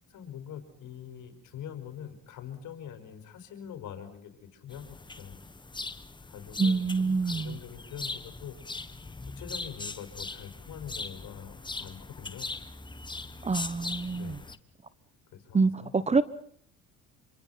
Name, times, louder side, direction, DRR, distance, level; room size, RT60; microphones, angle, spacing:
voice 1, 0.0-5.4 6.3-8.6 9.4-12.5 14.1-14.6 15.3-15.9, left 9 dB, 65° left, 7 dB, 5.0 m, -44 dB
sound 1, 4.7-14.6, left 3 dB, 15° left, 1.3 m, -40 dB
voice 2, 6.6-7.6 13.4-14.3 15.5-16.2, right 4 dB, 20° right, 16 dB, 1.0 m, -26 dB
26.5 x 25.0 x 5.8 m, 0.62 s
cardioid pair, 100°, 33 cm